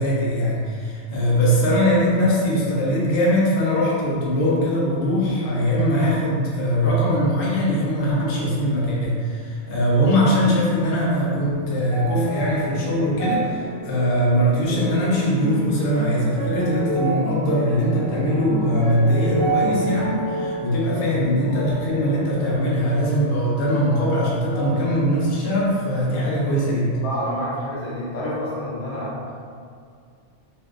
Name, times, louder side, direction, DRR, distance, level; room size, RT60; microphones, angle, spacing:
voice 1, 0.0-27.0, equal, 60° left, -5 dB, 0.6 m, -21 dB
sound 1, 10.7-24.2 24.5-25.5 26.2-26.3, right 1 dB, 60° right, 0.4 m, -30 dB
voice 2, 27.0-29.3, equal, 75° left, -6 dB, 1.0 m, -28 dB
2.6 x 2.2 x 2.3 m, 2.2 s
omnidirectional pair, 1.3 m